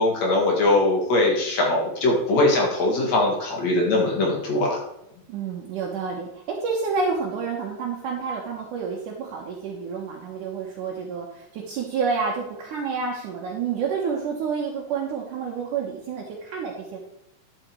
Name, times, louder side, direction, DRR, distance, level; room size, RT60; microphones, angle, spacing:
voice 1, 0.0-4.8, left 2 dB, 55° left, -1 dB, 2.9 m, -21 dB
voice 2, 5.3-17.1, right 5 dB, 70° right, -2 dB, 2.5 m, -29 dB
11.5 x 5.9 x 4.5 m, 0.80 s
omnidirectional pair, 4.1 m